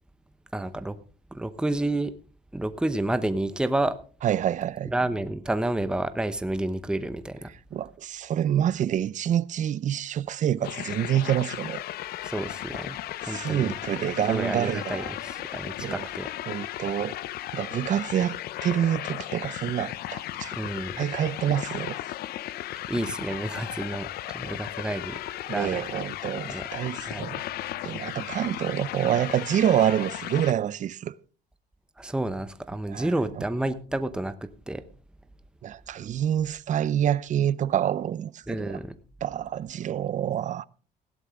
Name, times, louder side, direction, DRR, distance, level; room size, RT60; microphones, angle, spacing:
voice 1, 0.5-1.0 1.3-2.1 2.5-4.0 4.9-7.5 12.2-13.0 13.3-13.7 14.3-16.3 20.5-21.1 22.9-24.1 24.3-25.2 25.5-25.8 26.5-26.7 27.0-27.3 32.0-34.8 38.5-39.0, right 1 dB, 5° right, 0.9 m, -30 dB
voice 2, 4.2-4.9 7.7-11.8 13.2-15.1 15.8-16.1 16.5-17.2 17.5-20.5 21.0-22.0 25.5-27.4 27.8-31.1 32.9-33.1 35.6-38.8 39.2-40.6, right 10 dB, 50° right, 0.6 m, -27 dB
sound 1, 10.6-30.5, left 14 dB, 65° left, 0.6 m, -35 dB
16.5 x 11.0 x 3.6 m
cardioid pair, 110°, 17 cm